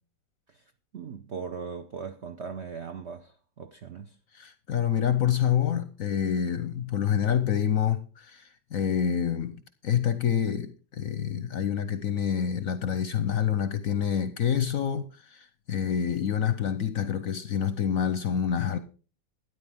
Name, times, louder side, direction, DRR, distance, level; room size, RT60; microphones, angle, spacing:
voice 1, 0.9-4.2, right 5 dB, 70° right, 0.6 m, -39 dB
voice 2, 4.3-18.8, left 8 dB, 60° left, 0.9 m, -27 dB
13.0 x 9.9 x 3.6 m
omnidirectional pair, 2.1 m